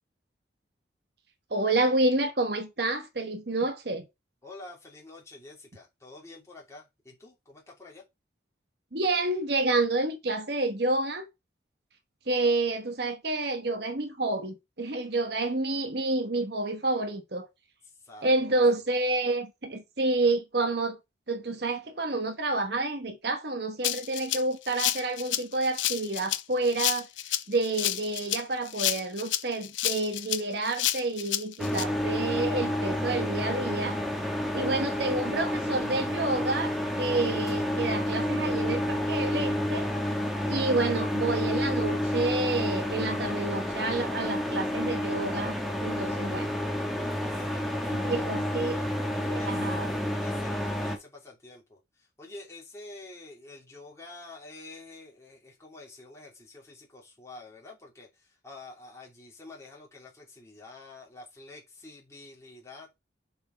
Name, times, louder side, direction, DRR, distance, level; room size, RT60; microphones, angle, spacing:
voice 1, 1.5-4.0 8.9-11.3 12.3-17.5 18.2-21.0 21.3-27.1 27.5-34.0 34.5-39.9 40.5-45.5 45.8-46.6 47.9-48.8 49.2-49.9, right 2 dB, 55° right, 1.1 m, -29 dB
voice 2, 4.4-8.0 17.8-18.6 47.2-49.7 50.2-62.9, left 2 dB, 15° left, 2.7 m, -48 dB
Rattle (instrument), 23.8-31.8, left 13 dB, 80° left, 0.7 m, -30 dB
sound 1, 31.6-51.0, left 1 dB, ahead, 1.3 m, -30 dB
6.9 x 4.4 x 4.4 m
head